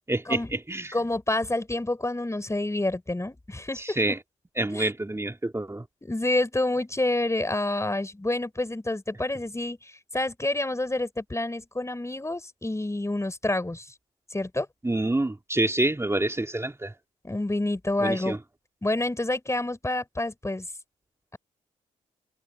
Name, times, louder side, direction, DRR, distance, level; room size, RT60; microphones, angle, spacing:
voice 1, 0.1-0.9 3.7-4.2 4.6-5.8 14.8-16.9 18.0-18.4, right 2 dB, 15° right, 3.3 m, -27 dB
voice 2, 0.9-4.0 4.7-4.9 6.0-13.9 14.3-14.7 17.2-18.4 18.8-20.7, left 2 dB, 15° left, 4.7 m, -28 dB
hypercardioid pair, 40°, 17 cm